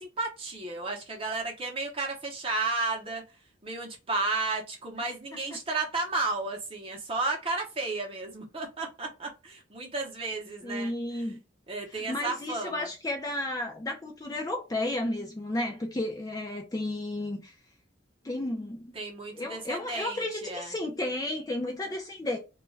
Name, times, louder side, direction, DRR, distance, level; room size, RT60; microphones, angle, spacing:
voice 1, 0.0-3.2 3.6-11.3 11.7-12.9 18.9-20.7, right 3 dB, 30° right, 0.7 m, -33 dB
voice 2, 10.6-11.4 12.1-17.5 18.2-19.0 19.3-22.4, left 1 dB, 20° left, 0.3 m, -33 dB
2.3 x 2.2 x 3.1 m
head